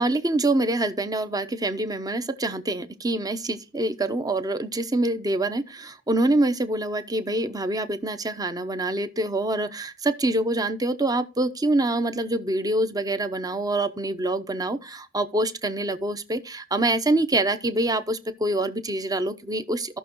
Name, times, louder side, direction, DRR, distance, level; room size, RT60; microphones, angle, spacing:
voice 1, 0.0-20.0, right 2 dB, 20° right, 0.8 m, -25 dB
15.5 x 6.1 x 3.1 m
head